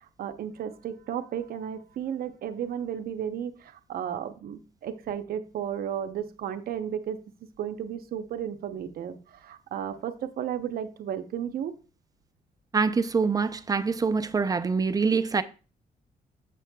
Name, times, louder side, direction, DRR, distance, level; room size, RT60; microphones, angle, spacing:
voice 1, 0.2-7.2 7.6-11.7, right 9 dB, 75° right, 0.7 m, -33 dB
voice 2, 12.7-15.4, right 5 dB, 25° right, 0.4 m, -25 dB
7.6 x 7.2 x 2.2 m
cardioid pair, 115°, 15 cm